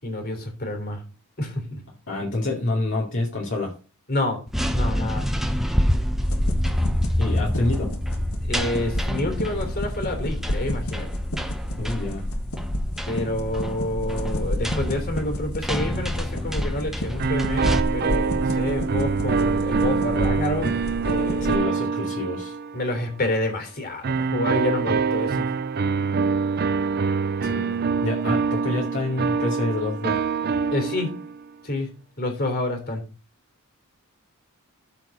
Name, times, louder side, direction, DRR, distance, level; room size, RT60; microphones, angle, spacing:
voice 1, 0.0-1.0 1.4-1.8 4.1-4.4 4.7-5.3 8.4-11.1 13.1-20.7 21.0-21.8 22.7-25.5 30.7-31.1 31.6-33.0, left 1 dB, 45° left, 5 dB, 3.3 m, -28 dB
voice 2, 2.1-3.7 7.2-7.9 11.8-12.2 21.4-22.6 27.4-27.7 28.0-30.2, left 2 dB, 60° left, -3 dB, 2.6 m, -27 dB
sound 1, 4.5-17.8, equal, ahead, 0.8 m, -27 dB
sound 2, 6.2-21.6, left 1 dB, 75° left, 1.9 m, -31 dB
sound 3, 17.2-23.0 24.0-31.4, right 5 dB, 45° right, 0.5 m, -25 dB
13.5 x 4.7 x 5.3 m, 0.34 s
head